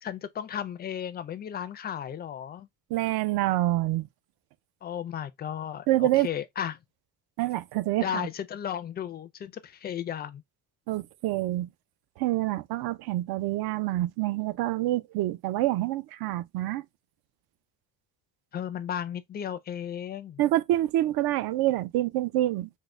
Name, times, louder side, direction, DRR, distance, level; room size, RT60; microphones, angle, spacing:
voice 1, 0.0-2.7 4.8-6.8 8.0-10.4 18.5-20.4, left 9 dB, 25° left, 0.3 m, -34 dB
voice 2, 2.9-4.1 5.9-6.3 7.4-8.2 10.9-11.7 12.2-16.8 20.4-22.7, right 15 dB, 65° right, 0.5 m, -27 dB
3.7 x 2.1 x 3.1 m
cardioid pair, 135°, 40 cm